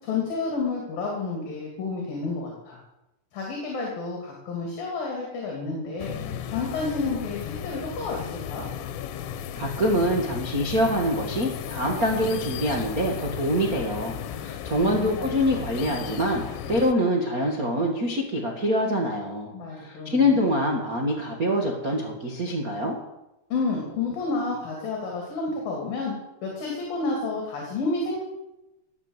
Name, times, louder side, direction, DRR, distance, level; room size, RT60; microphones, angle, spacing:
voice 1, 0.0-2.8 3.3-6.1 6.5-8.6 14.8-15.3 19.5-20.4 23.5-26.1 26.4-28.2, left 3 dB, 55° left, -1 dB, 4.4 m, -30 dB
sound 1, 6.0-16.9, left 9 dB, 85° left, 3.3 m, -35 dB
voice 2, 9.5-19.5 19.8-23.0, equal, 80° right, -1 dB, 0.8 m, -25 dB
18.5 x 7.4 x 8.1 m, 0.95 s
omnidirectional pair, 5.0 m